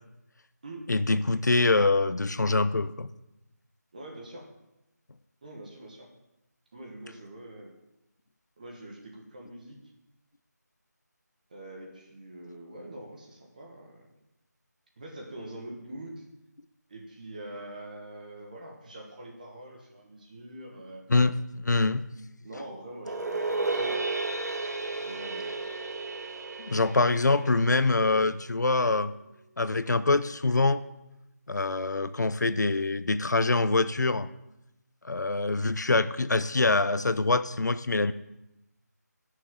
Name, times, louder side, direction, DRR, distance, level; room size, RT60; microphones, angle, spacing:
voice 1, 0.9-3.1 21.1-22.0 26.6-29.1 29.6-30.8 31.5-34.3 35.0-38.1, left 3 dB, 75° left, 13 dB, 0.7 m, -25 dB
voice 2, 3.9-4.5 5.4-6.1 6.7-7.7 8.6-9.8 11.5-14.1 15.0-16.2 16.9-21.1 22.4-24.1 25.0-25.6, right 1 dB, 25° right, 0 dB, 1.4 m, -44 dB
sound 1, 23.0-28.3, right 3 dB, 60° right, 1.6 m, -33 dB
19.5 x 6.6 x 3.8 m, 0.90 s
figure-of-eight pair, 175°, 10 cm